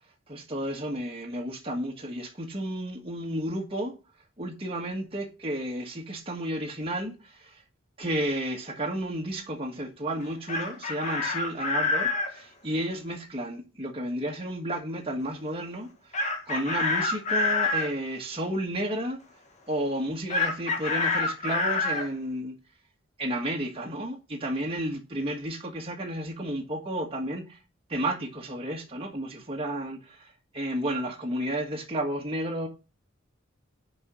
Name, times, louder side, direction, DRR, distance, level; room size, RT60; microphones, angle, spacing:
voice 1, 0.3-3.9 4.4-7.6 8.0-19.2 19.7-22.5 23.2-27.6 27.9-32.7, right 1 dB, 30° right, 1.5 m, -32 dB
Chicken rooster, 10.2-12.3 16.1-17.9 20.3-22.1, left 3 dB, 35° left, 1.5 m, -27 dB
6.7 x 5.4 x 7.0 m
head